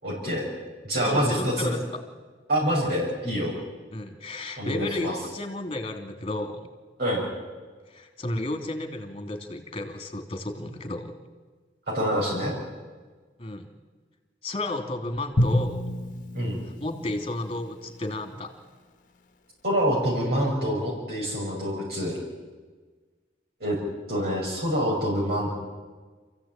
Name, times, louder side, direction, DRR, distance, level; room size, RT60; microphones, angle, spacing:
voice 1, 0.0-0.5 0.8-1.7 2.5-3.6 4.6-5.1 7.0-7.2 11.9-12.5 16.3-16.6 19.6-22.2 23.6-23.8 24.1-25.5, equal, 60° right, -5 dB, 6.1 m, -26 dB
voice 2, 0.9-1.8 3.9-6.6 7.9-11.1 13.4-13.7 14.4-15.8 16.6-18.5, left 2 dB, 30° left, 6 dB, 2.9 m, -32 dB
Drum, 15.4-18.3, left 1 dB, 45° left, 1.5 m, -29 dB
28.0 x 15.5 x 9.0 m, 1.4 s
head